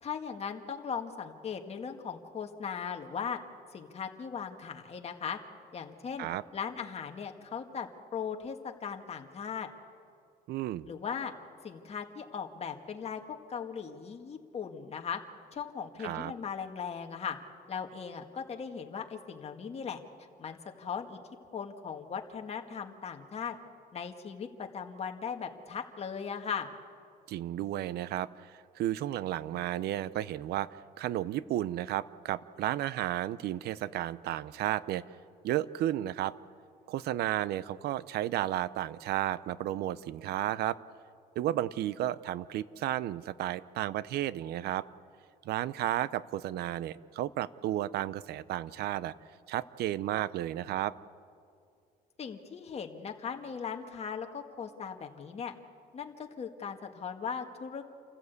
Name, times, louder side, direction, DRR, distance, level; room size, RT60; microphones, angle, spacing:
voice 1, 0.0-3.4 3.7-5.4 5.7-9.7 10.9-11.3 11.6-13.2 13.5-15.2 15.5-17.4 17.7-20.0 20.4-21.2 21.5-23.6 23.9-26.7 52.2-55.5 55.9-57.9, left 6 dB, 40° left, 4 dB, 1.9 m, -38 dB
voice 2, 10.5-10.9 16.0-16.3 27.3-30.7 31.0-35.0 35.4-36.3 36.9-40.8 41.4-44.9 45.4-49.1 49.5-50.9, right 13 dB, 70° right, 18 dB, 0.6 m, -33 dB
28.5 x 14.5 x 8.3 m, 2.4 s
cardioid pair, 110°, 17 cm